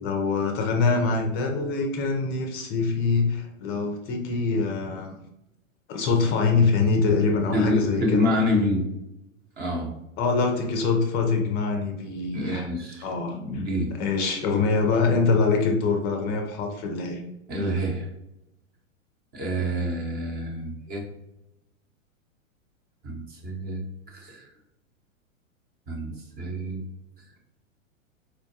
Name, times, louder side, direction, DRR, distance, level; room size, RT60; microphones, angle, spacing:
voice 1, 0.0-5.1 5.9-8.3 10.2-12.7 13.0-13.6 14.0-17.2, left 4 dB, 25° left, 2 dB, 0.5 m, -24 dB
voice 2, 7.5-8.8 9.6-9.9 12.3-13.1 13.4-13.9 17.5-18.1 19.3-21.0 23.0-23.8 24.1-24.5 25.9-26.8, left 1 dB, 25° right, 1 dB, 0.8 m, -27 dB
4.4 x 2.2 x 2.7 m, 0.86 s
figure-of-eight pair, 105°, 41 cm